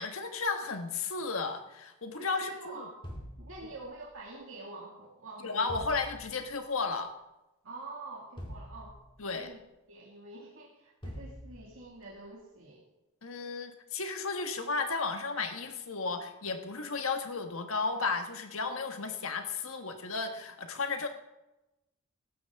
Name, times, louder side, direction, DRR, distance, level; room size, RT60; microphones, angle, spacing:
voice 1, 0.0-2.9 5.4-7.1 9.2-9.5 13.2-21.1, left 4 dB, 85° left, 6 dB, 1.4 m, -34 dB
voice 2, 2.3-3.0 3.4-5.7 7.6-9.0 9.3-9.6 9.9-12.8, right 2 dB, 75° right, -4 dB, 2.2 m, -46 dB
sound 1, 3.0-4.2 5.7-6.6 8.4-9.5 11.0-12.0, equal, 25° left, 2.3 m, -45 dB
15.5 x 12.5 x 3.6 m, 0.98 s
head